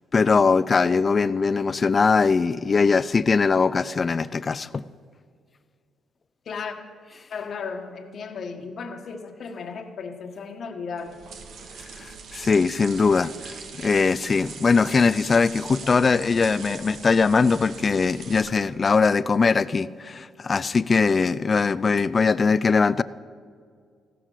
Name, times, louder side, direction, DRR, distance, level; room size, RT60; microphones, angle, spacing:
voice 1, 0.1-4.8 12.0-23.0, left 4 dB, 35° left, 17 dB, 0.5 m, -21 dB
voice 2, 6.4-6.8 7.3-11.2 16.8-16.9, left 5 dB, 55° left, 5 dB, 1.5 m, -35 dB
sound 1, 11.0-18.8, right 5 dB, 70° right, 1.7 m, -41 dB
15.0 x 13.0 x 6.5 m, 2.1 s
cardioid pair, 90°, 0 cm